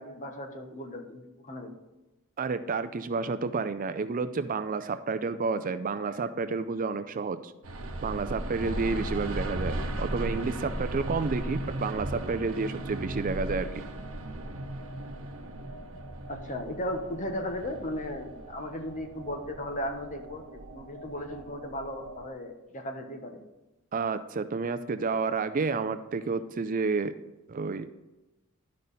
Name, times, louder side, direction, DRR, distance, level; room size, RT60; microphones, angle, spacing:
voice 1, 0.0-1.8 16.3-23.4, left 1 dB, 35° left, 4 dB, 1.2 m, -36 dB
voice 2, 2.4-7.5 8.0-13.8 23.9-27.1 27.5-27.9, right 4 dB, 40° right, 11 dB, 0.4 m, -30 dB
sound 1, 7.6-22.3, right 1 dB, 75° right, 1.0 m, -37 dB
12.0 x 5.3 x 4.1 m, 1.0 s
head